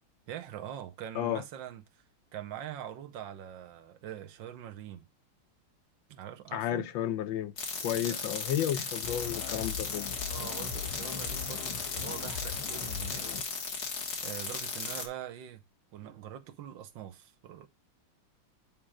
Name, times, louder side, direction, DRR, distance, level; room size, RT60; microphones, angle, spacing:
voice 1, 0.3-2.0 2.3-5.1 6.1-6.9 8.0-8.4 10.3-13.3 14.2-15.6 15.9-17.7, right 10 dB, 70° right, 1.5 m, -43 dB
voice 2, 6.5-7.5 7.8-10.1, left 11 dB, 75° left, 1.4 m, -32 dB
sound 1, 7.6-15.1, left 5 dB, 55° left, 1.7 m, -36 dB
sound 2, 9.0-13.4, left 8 dB, 90° left, 1.8 m, -40 dB
8.9 x 3.0 x 4.8 m
omnidirectional pair, 2.3 m